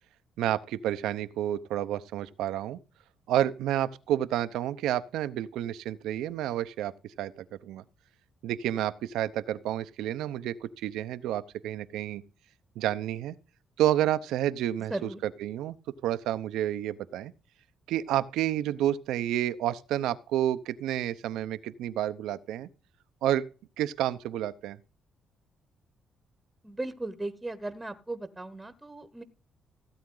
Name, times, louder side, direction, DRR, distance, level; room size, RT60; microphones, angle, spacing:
voice 1, 0.4-2.8 3.3-6.9 7.2-7.8 8.4-12.2 12.8-13.4 13.8-15.8 16.0-17.3 17.9-22.7 23.2-23.4 23.8-24.8, right 12 dB, 90° right, 0.7 m, -30 dB
voice 2, 14.9-15.2 26.6-29.2, right 2 dB, 10° right, 1.1 m, -36 dB
16.0 x 8.4 x 3.9 m
cardioid pair, 90°, 0 cm